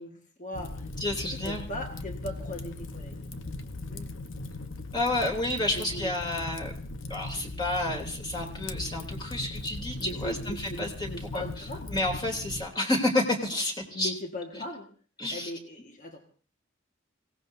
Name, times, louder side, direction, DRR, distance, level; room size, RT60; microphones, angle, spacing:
voice 1, 0.0-0.9 1.4-3.3 3.9-4.1 5.7-6.1 10.0-12.0 13.9-14.9 15.3-16.3, left 1 dB, 40° left, 3 dB, 1.6 m, -39 dB
Fire, 0.5-12.7, left 2 dB, 70° left, 1.0 m, -39 dB
voice 2, 1.0-1.6 4.9-6.7 7.1-11.6 11.9-14.1 15.2-15.5, left 1 dB, 25° left, 0 dB, 3.0 m, -30 dB
26.0 x 17.5 x 2.7 m, 0.40 s
head